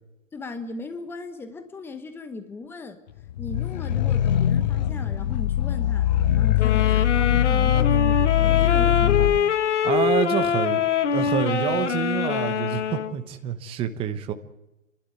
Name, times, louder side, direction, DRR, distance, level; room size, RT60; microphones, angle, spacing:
voice 1, 0.3-3.0 3.4-6.1 6.3-9.6, left 3 dB, 5° left, 8 dB, 1.1 m, -37 dB
sound 1, 3.3-9.4, left 11 dB, 35° left, 0.7 m, -22 dB
sound 2, 6.6-13.2, left 7 dB, 65° left, 1.6 m, -24 dB
voice 2, 9.8-10.8 11.1-14.3, right 9 dB, 15° right, 8 dB, 0.9 m, -27 dB
29.5 x 12.0 x 9.3 m, 0.95 s
hypercardioid pair, 140°, 39 cm